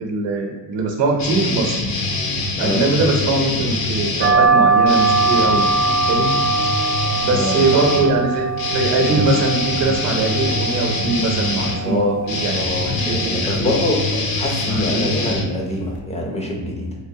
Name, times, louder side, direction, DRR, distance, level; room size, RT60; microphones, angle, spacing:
voice 1, 0.0-1.8 2.6-5.7 6.1-6.4 7.2-12.0 12.4-12.6 12.9-13.7 14.1-14.3 14.6-15.1, right 3 dB, 75° right, 0 dB, 0.7 m, -21 dB
sound 1, 1.2-4.4 4.8-16.0, left 2 dB, 60° left, 0.6 m, -24 dB
sound 2, 4.2-13.3, right 4 dB, 40° right, 0.5 m, -21 dB
voice 2, 7.3-7.8 11.8-12.2 12.5-14.0 14.3-17.0, left 1 dB, 15° left, 0 dB, 0.4 m, -24 dB
3.3 x 3.0 x 2.7 m, 1.3 s
cardioid pair, 160°, 42 cm